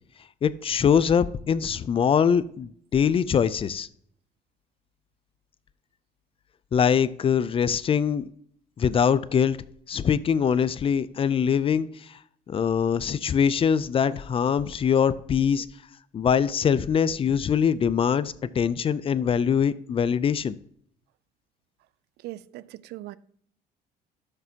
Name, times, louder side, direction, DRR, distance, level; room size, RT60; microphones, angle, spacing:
voice 1, 0.4-3.9 6.7-8.3 8.8-9.6 9.9-12.1 12.5-15.7 16.1-20.6, left 7 dB, 35° left, 0.4 m, -23 dB
voice 2, 22.2-23.2, right 16 dB, 80° right, 0.4 m, -39 dB
12.5 x 6.7 x 2.8 m
cardioid pair, 110°, 17 cm